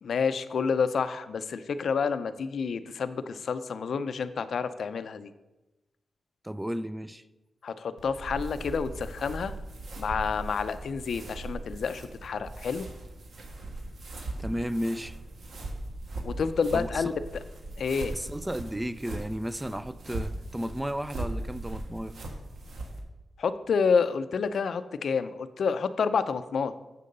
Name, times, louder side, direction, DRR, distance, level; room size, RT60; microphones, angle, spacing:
voice 1, 0.0-5.3 7.6-9.5 9.9-12.9 16.2-17.1 17.8-18.1 23.4-26.7, left 5 dB, 70° left, 0.5 m, -29 dB
voice 2, 6.4-7.2 14.4-15.2 16.7-17.2 18.1-22.2, equal, 10° right, 0.4 m, -33 dB
sound 1, 8.0-23.0, right 1 dB, 75° right, 1.4 m, -39 dB
7.5 x 6.7 x 5.3 m
wide cardioid pair, 100°, 0 cm